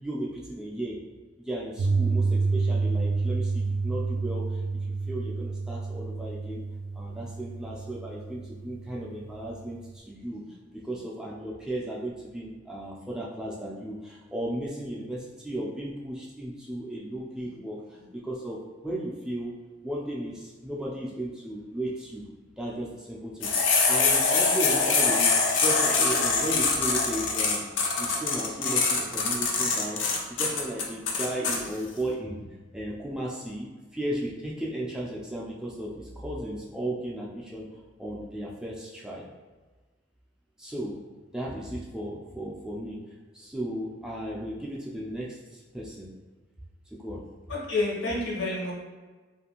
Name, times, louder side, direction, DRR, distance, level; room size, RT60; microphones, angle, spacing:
voice 1, 0.0-1.0 1.4-4.6 5.1-6.6 6.9-19.5 19.8-22.3 22.6-25.3 25.6-27.7 28.0-32.5 32.7-37.7 38.0-39.3 40.6-41.0 41.3-43.0 43.3-46.1 46.9-47.2, right 1 dB, 5° right, -4 dB, 0.3 m, -35 dB
Piano, 1.8-9.9, right 4 dB, 85° right, 0.4 m, -29 dB
sound 1, 23.4-31.6, left 4 dB, 90° left, 0.5 m, -24 dB
voice 2, 47.5-48.7, left 2 dB, 70° left, -3 dB, 0.8 m, -28 dB
2.5 x 2.4 x 2.8 m, 1.3 s
head